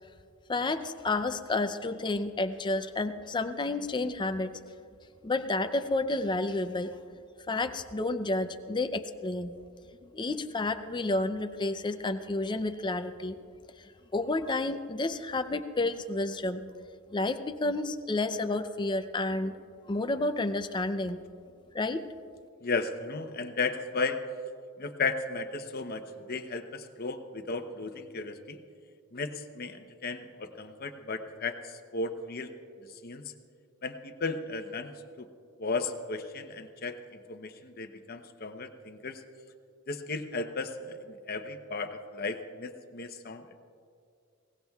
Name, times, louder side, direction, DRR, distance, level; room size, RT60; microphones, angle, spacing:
voice 1, 0.5-4.7 5.2-6.9 7.5-9.5 10.0-13.4 14.1-16.7 17.1-19.6 19.9-21.2 21.7-22.0, left 2 dB, 20° left, 9 dB, 0.5 m, -30 dB
voice 2, 22.6-24.2 24.8-28.6 29.1-32.5 32.9-33.2 33.8-34.9 35.2-35.3 35.6-39.2 39.9-43.6, left 3 dB, 45° left, 7 dB, 0.8 m, -35 dB
21.5 x 18.0 x 2.3 m, 2.3 s
head